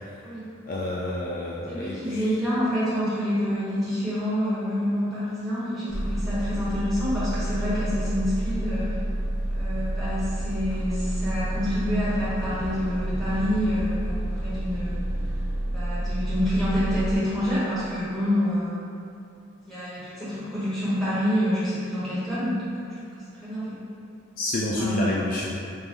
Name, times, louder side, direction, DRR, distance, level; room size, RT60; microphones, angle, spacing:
voice 1, 0.7-2.2 24.4-25.5, left 1 dB, 40° left, -4 dB, 0.3 m, -28 dB
voice 2, 1.7-9.0 9.5-15.0 15.7-18.8 19.7-23.8 24.8-24.9, equal, ahead, -13 dB, 1.4 m, -27 dB
sound 1, 5.9-17.2, right 1 dB, 20° right, 1.0 m, -29 dB
4.5 x 2.6 x 3.4 m, 2.5 s
head